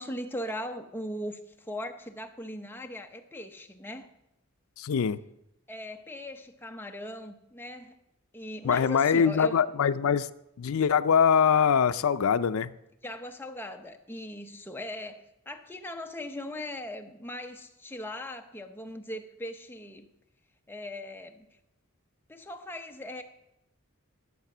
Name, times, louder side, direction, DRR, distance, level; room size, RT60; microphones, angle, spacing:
voice 1, 0.0-4.1 5.7-8.0 8.3-9.6 13.0-20.1 20.7-21.5 22.3-23.2, left 1 dB, 10° left, 5 dB, 0.7 m, -39 dB
voice 2, 4.8-5.2 8.6-10.3 10.6-12.7, left 7 dB, 80° left, 12 dB, 0.4 m, -23 dB
12.0 x 6.7 x 6.0 m, 0.86 s
head